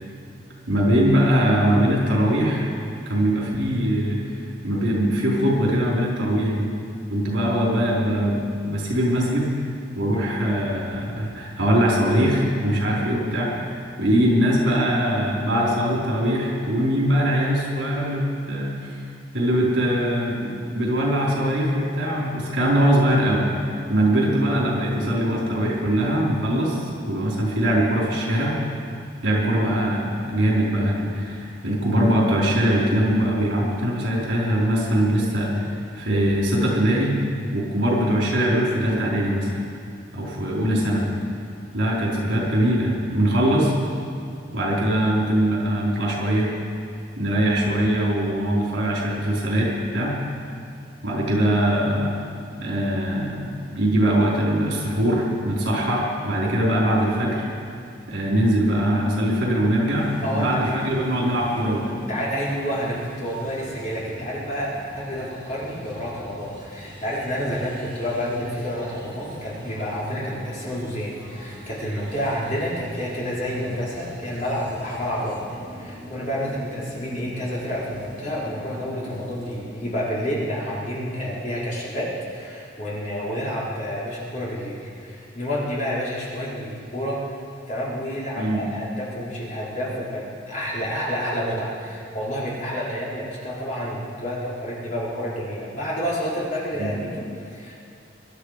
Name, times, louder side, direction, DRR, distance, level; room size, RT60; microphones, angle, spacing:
voice 1, 0.7-2.7 3.1-6.7 7.1-9.5 10.0-19.0 19.3-28.6 29.2-37.1 37.5-39.6 40.1-41.1 41.7-43.7 44.5-46.5 47.2-50.1 51.0-52.1 52.6-57.5 58.1-61.9 88.4-88.6 96.8-96.9, equal, 75° right, -4 dB, 4.6 m, -22 dB
sound 1, 60.0-79.6, equal, 25° right, 3.4 m, -43 dB
voice 2, 60.2-60.6 62.0-87.4 87.7-97.7, equal, 40° left, -7 dB, 4.1 m, -29 dB
23.0 x 11.5 x 5.1 m, 2.5 s
head